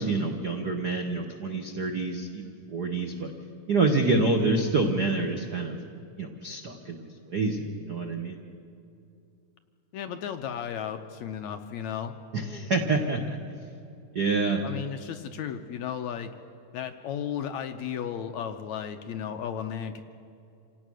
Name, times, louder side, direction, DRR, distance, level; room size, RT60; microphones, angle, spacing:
voice 1, 0.0-3.3 3.7-5.8 6.2-8.4 12.3-13.4 14.1-14.6, right 3 dB, 75° right, 3 dB, 0.9 m, -27 dB
voice 2, 9.9-12.1 14.6-16.3 16.7-20.0, left 8 dB, 75° left, 7 dB, 1.8 m, -34 dB
27.0 x 17.5 x 6.3 m, 2.5 s
omnidirectional pair, 3.8 m